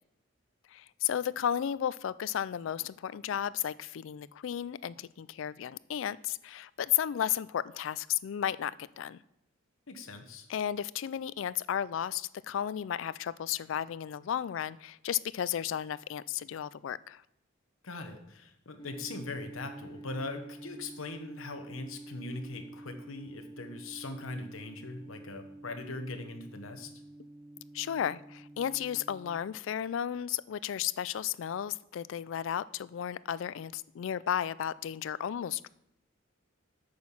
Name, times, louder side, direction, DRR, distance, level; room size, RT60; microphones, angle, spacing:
voice 1, 0.7-9.2 10.5-17.2 27.7-35.7, left 10 dB, 65° left, 19 dB, 0.3 m, -33 dB
voice 2, 9.9-10.5 17.8-26.9, left 2 dB, 85° left, 6 dB, 1.1 m, -41 dB
sound 1, 18.8-29.4, right 1 dB, 20° left, 0.6 m, -48 dB
8.6 x 6.2 x 5.6 m, 0.81 s
head